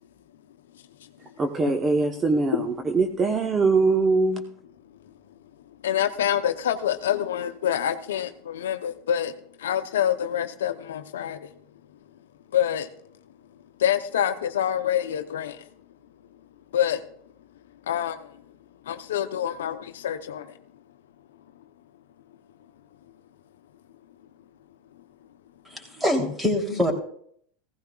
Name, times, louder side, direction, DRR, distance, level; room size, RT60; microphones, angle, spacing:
voice 1, 1.4-4.4, right 3 dB, 25° right, 1.0 m, -22 dB
voice 2, 5.8-9.3 9.6-11.5 12.5-12.9 13.8-15.7 16.7-17.0 17.9-18.4 18.9-20.6 26.7-26.8, left 10 dB, 85° left, 0.7 m, -26 dB
voice 3, 25.7-26.9, left 1 dB, 10° right, 3.1 m, -24 dB
16.0 x 15.0 x 2.4 m
hypercardioid pair, 100°, 0 cm